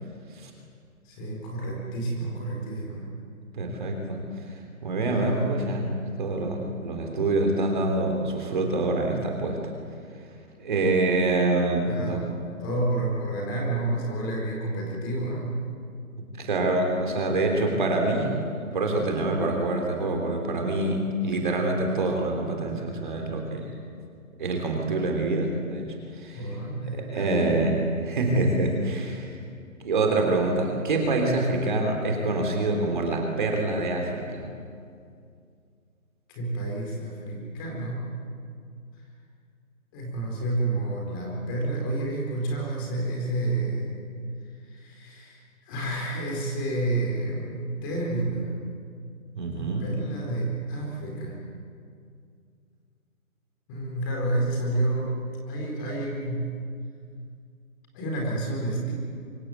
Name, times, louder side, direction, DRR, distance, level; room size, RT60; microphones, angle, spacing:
voice 1, 1.0-3.1 5.1-5.6 11.8-15.6 26.3-27.5 36.3-38.1 39.9-44.0 44.4-48.5 49.5-51.4 53.7-55.2 55.5-56.6 57.9-58.9, right 2 dB, 15° left, -2 dB, 4.5 m, -30 dB
voice 2, 3.5-4.2 4.8-5.9 6.2-9.6 10.6-12.2 16.4-18.3 18.7-23.7 24.4-26.5 26.8-29.3 29.8-34.4 49.4-49.9, right 2 dB, 35° right, 2 dB, 3.4 m, -26 dB
25.0 x 23.5 x 8.0 m, 2.3 s
hypercardioid pair, 165°, 43 cm